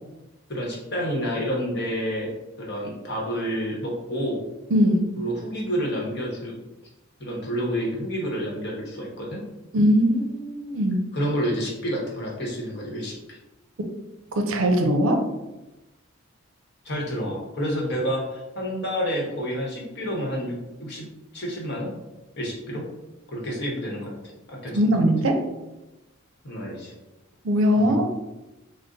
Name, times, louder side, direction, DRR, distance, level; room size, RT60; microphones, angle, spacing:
voice 1, 0.5-2.3 2.6-4.4 5.2-6.6 7.2-9.4 11.1-13.4 16.8-21.1 21.3-21.9 22.4-22.9 23.3-24.1 24.5-24.8 26.4-26.9, equal, 50° left, -2 dB, 0.9 m, -29 dB
voice 2, 4.7-5.1 9.7-11.0 14.4-15.2 24.7-25.4 27.4-28.1, equal, 70° right, 5 dB, 0.5 m, -20 dB
3.8 x 2.0 x 3.8 m, 1.0 s
head